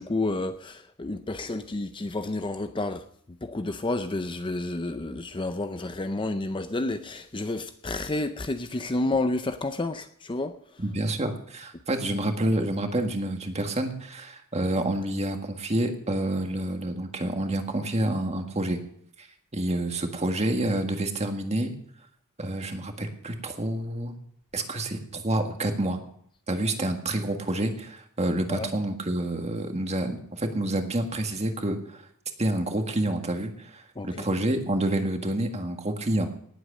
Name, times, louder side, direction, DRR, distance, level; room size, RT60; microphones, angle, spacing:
voice 1, 0.0-3.0 3.4-10.6 28.5-28.7 34.0-34.3, left 2 dB, 20° left, 0.6 m, -30 dB
voice 2, 10.8-18.8 19.2-19.3 19.5-21.7 22.4-24.1 24.5-26.0 26.5-32.0 32.4-36.3, right 1 dB, 30° right, 1.7 m, -28 dB
18.5 x 8.1 x 6.5 m
head